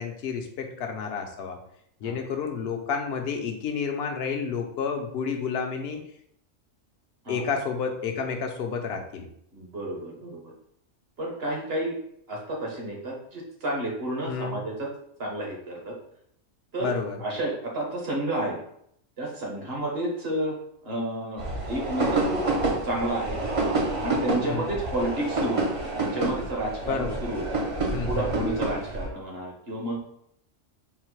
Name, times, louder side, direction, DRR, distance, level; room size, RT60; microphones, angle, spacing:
voice 1, 0.0-1.6 2.0-6.0 7.3-9.3 14.3-14.6 16.8-17.2 24.4-24.7 26.9-27.2 27.9-28.5, left 6 dB, 60° left, 4 dB, 0.8 m, -30 dB
voice 2, 9.5-10.5 11.2-12.0 12.3-14.9 15.2-15.9 16.7-16.9 17.2-18.6 19.2-22.4 22.8-23.4 24.0-25.6 25.9-27.6 28.1-30.0, right 1 dB, 55° right, -1 dB, 1.2 m, -31 dB
sound 1, 21.4-29.1, right 2 dB, 40° right, 0.5 m, -28 dB
4.0 x 2.1 x 4.5 m, 0.71 s
omnidirectional pair, 1.3 m